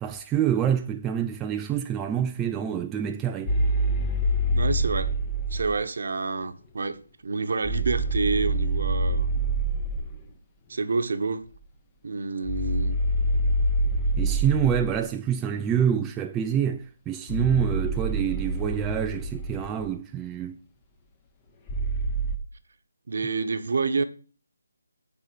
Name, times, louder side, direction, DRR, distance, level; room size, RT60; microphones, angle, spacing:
voice 1, 0.0-3.6 14.2-20.6, right 9 dB, 10° right, 0.3 m, -27 dB
sound 1, 3.5-5.8 7.6-10.2 12.5-15.0 17.3-19.9 21.7-22.4, right 1 dB, 15° left, 0.9 m, -26 dB
voice 2, 4.5-5.1 5.5-9.3 10.7-11.5 12.0-13.0 23.1-24.0, right 4 dB, 55° right, 1.0 m, -28 dB
8.9 x 4.1 x 6.2 m
figure-of-eight pair, 165°, 0 cm